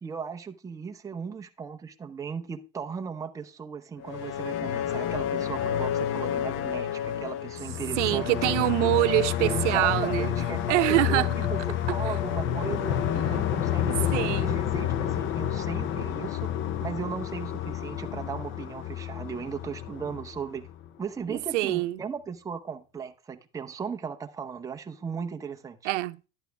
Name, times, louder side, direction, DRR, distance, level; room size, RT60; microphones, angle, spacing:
voice 1, 0.0-8.5 9.4-16.5 16.8-20.7 21.0-25.8, right 6 dB, 10° right, 0.7 m, -37 dB
sound 1, 4.0-20.9, left 10 dB, 35° left, 0.6 m, -29 dB
voice 2, 8.0-10.3 10.7-11.3 13.1-13.4 13.8-14.6 21.3-22.0 25.8-26.2, right 18 dB, 90° right, 0.7 m, -25 dB
10.5 x 8.2 x 3.4 m
supercardioid pair, 145°, 35 cm